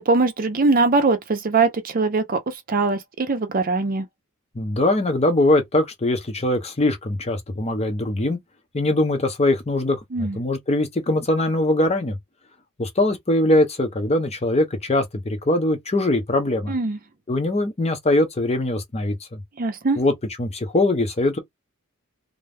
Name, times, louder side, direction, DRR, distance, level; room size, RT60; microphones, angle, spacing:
voice 1, 0.0-4.1 10.1-10.4 16.7-17.0 19.6-20.0, right 3 dB, 40° right, 0.6 m, -21 dB
voice 2, 4.5-8.4 8.7-12.2 12.8-16.7 17.3-19.4 20.0-20.1 20.4-21.4, left 1 dB, 30° left, 0.7 m, -22 dB
2.6 x 2.2 x 3.3 m
head